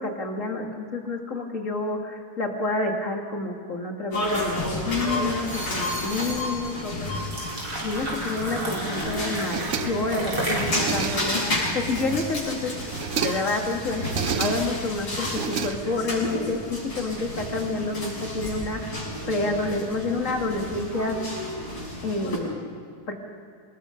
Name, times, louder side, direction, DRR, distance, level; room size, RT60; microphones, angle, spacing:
voice 1, 0.0-7.1 7.8-12.7 13.2-19.0 19.3-21.2 22.0-22.6 23.1-23.2, left 3 dB, 35° left, 2 dB, 2.5 m, -29 dB
sound 1, 4.1-22.4, left 1 dB, 50° left, 8.1 m, -31 dB
sound 2, 7.1-12.4, right 1 dB, 65° right, 6.0 m, -32 dB
sound 3, 9.3-10.2 10.6-11.5 11.8-12.5 12.8-13.6 14.0-14.8 15.2-16.2, right 6 dB, 80° right, 0.6 m, -31 dB
27.0 x 20.5 x 5.3 m, 2.3 s
omnidirectional pair, 2.4 m